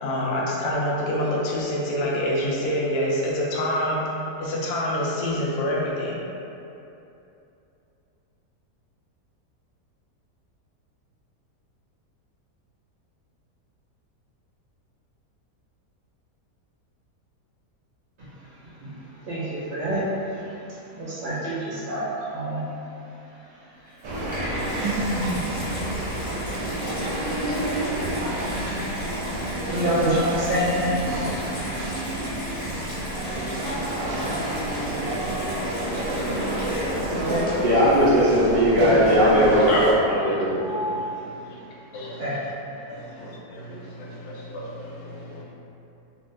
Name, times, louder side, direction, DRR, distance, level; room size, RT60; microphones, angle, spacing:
voice 1, 0.0-4.0 4.4-6.2, left 1 dB, 65° left, -5 dB, 0.6 m, -25 dB
voice 2, 19.2-20.0 20.9-22.6 24.6-25.4 29.7-31.0 37.1-37.5 42.2-42.4, right 1 dB, 65° right, -10 dB, 1.4 m, -27 dB
Water tap faucet / Bathtub (filling or washing), 23.9-37.9 38.7-38.8, equal, 40° left, 1.1 m, -35 dB
sound 1, 24.0-39.9, right 1 dB, 85° right, 1.4 m, -29 dB
voice 3, 37.6-40.9, equal, 50° right, -11 dB, 0.8 m, -19 dB
voice 4, 40.6-41.5 41.9-42.4 42.9-45.4, left 1 dB, 90° left, -5 dB, 1.3 m, -34 dB
3.2 x 2.5 x 3.2 m, 2.8 s
omnidirectional pair, 1.8 m